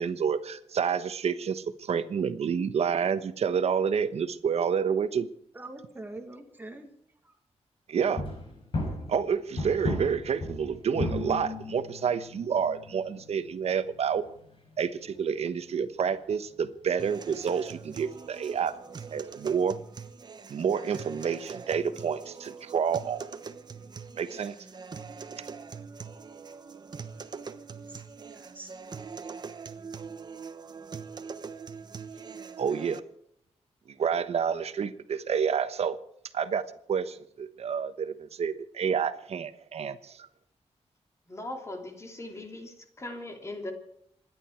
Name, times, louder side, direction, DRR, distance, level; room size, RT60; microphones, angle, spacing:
voice 1, 0.0-5.3 7.9-8.2 9.1-14.2 14.8-18.7 19.1-19.8 20.5-23.2 24.2-24.5 32.6-33.0 33.9-36.0 36.3-36.6 36.9-40.3, right 7 dB, 65° right, 12 dB, 1.2 m, -29 dB
voice 2, 5.5-6.9 7.2-7.3 27.9-28.0 28.3-28.7, right 2 dB, 15° right, 5 dB, 1.8 m, -44 dB
sound 1, 8.0-15.7 16.0-16.2 16.6-16.7 17.0-17.1 17.3-17.4 17.6-17.9 18.5-18.7 19.2-19.3, left 2 dB, 50° left, 6.2 m, -36 dB
sound 2, 17.0-33.0, right 5 dB, 40° right, 1.0 m, -43 dB
voice 3, 41.3-43.7, left 1 dB, 25° left, 4 dB, 3.0 m, -39 dB
26.5 x 11.0 x 4.6 m, 0.70 s
wide cardioid pair, 165°, 11 cm